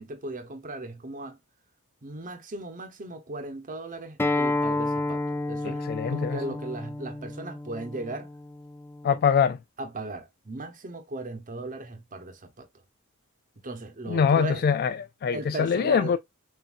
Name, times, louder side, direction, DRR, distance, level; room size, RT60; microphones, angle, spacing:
voice 1, 0.0-1.4 2.0-5.8 6.1-8.3 9.8-12.7 13.6-14.6 15.3-16.2, right 2 dB, 40° right, 1.0 m, -37 dB
Acoustic guitar, 4.2-9.4, left 2 dB, 10° left, 0.6 m, -31 dB
voice 2, 5.6-6.4 9.0-9.6 14.1-16.2, left 6 dB, 45° left, 0.3 m, -24 dB
7.1 x 2.7 x 2.5 m
head